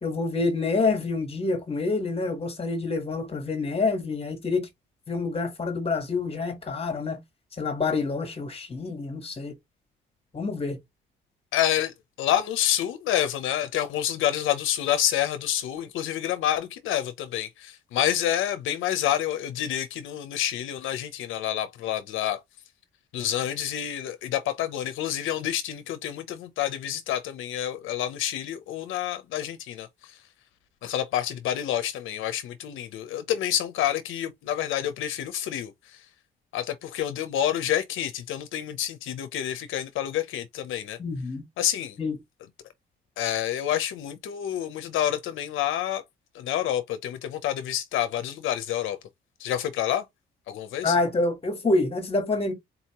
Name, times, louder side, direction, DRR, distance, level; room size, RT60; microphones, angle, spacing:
voice 1, 0.0-4.7 5.1-7.2 7.6-9.5 10.3-10.8 41.0-41.4 42.0-42.2 50.8-52.5, left 3 dB, 30° left, 1.5 m, -27 dB
voice 2, 11.5-22.4 23.1-30.2 30.8-36.1 36.5-41.0 41.6-42.0 43.2-46.0 46.3-49.0 49.4-50.1 50.5-51.0, left 11 dB, 85° left, 0.6 m, -28 dB
4.0 x 2.8 x 2.9 m
cardioid pair, 90°, 20 cm